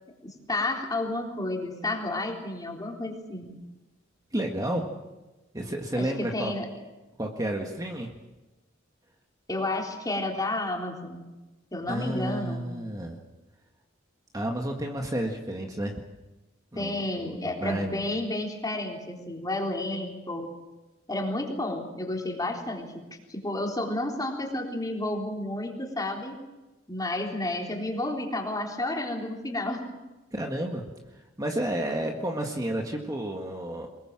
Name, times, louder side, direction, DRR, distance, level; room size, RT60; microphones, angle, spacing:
voice 1, 0.2-3.5 5.9-6.7 9.5-11.3 11.7-12.7 16.8-20.5 21.1-26.4 26.9-29.8, left 2 dB, 20° left, 1 dB, 3.8 m, -31 dB
voice 2, 4.3-4.9 5.5-6.5 7.2-8.1 11.9-13.2 14.3-16.0 16.7-18.0 30.3-30.8 31.4-33.9, right 1 dB, 20° right, 2 dB, 1.9 m, -31 dB
23.5 x 21.5 x 7.6 m, 1.1 s
head